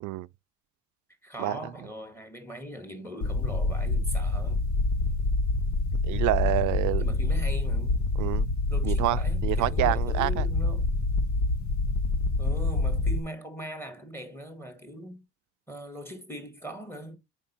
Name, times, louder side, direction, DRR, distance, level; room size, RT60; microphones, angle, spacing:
voice 1, 1.2-4.6 7.0-8.1 8.7-10.9 12.4-15.2 15.7-17.2, equal, 5° left, 2.2 m, -40 dB
sound 1, 3.2-13.2, left 2 dB, 65° left, 1.2 m, -26 dB
voice 2, 6.0-7.0 8.2-8.5 8.8-10.5, right 18 dB, 70° right, 0.4 m, -27 dB
5.2 x 4.8 x 5.7 m
supercardioid pair, 80°, 31 cm